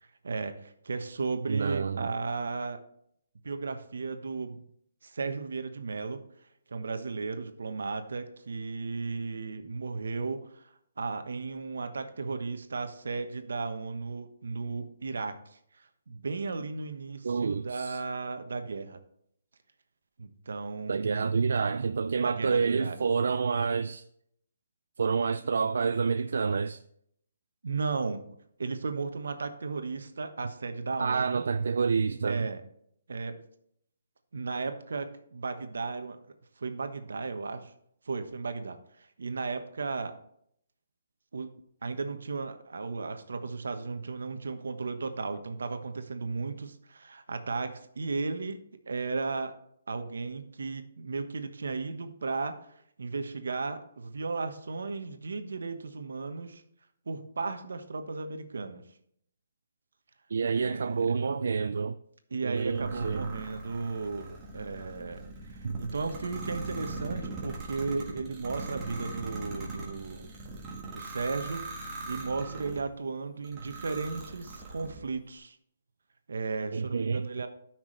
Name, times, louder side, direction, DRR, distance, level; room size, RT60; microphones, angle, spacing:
voice 1, 0.2-2.8 3.4-4.6 5.0-6.2 6.7-10.7 11.0-19.0 20.2-21.4 22.2-23.0 27.6-28.2 28.6-31.4 32.2-32.6 33.1-33.4 34.3-36.2 36.6-37.7 38.0-40.2 41.3-41.5 41.8-48.6 48.9-49.5 49.9-56.6 57.1-58.8 60.5-61.2 62.3-70.3 70.9-71.6 72.0-75.6 76.3-77.5, right 4 dB, 85° right, 1.1 m, -35 dB
voice 2, 1.5-2.1 17.2-18.0 20.9-24.0 25.0-26.8 31.0-32.5 60.3-62.0 62.4-63.3 65.6-65.8 76.7-77.3, right 5 dB, 65° right, 0.3 m, -28 dB
sound 1, 62.6-72.9 73.4-75.1, right 2 dB, 15° right, 1.5 m, -41 dB
13.0 x 6.0 x 3.2 m
hypercardioid pair, 175°, 0 cm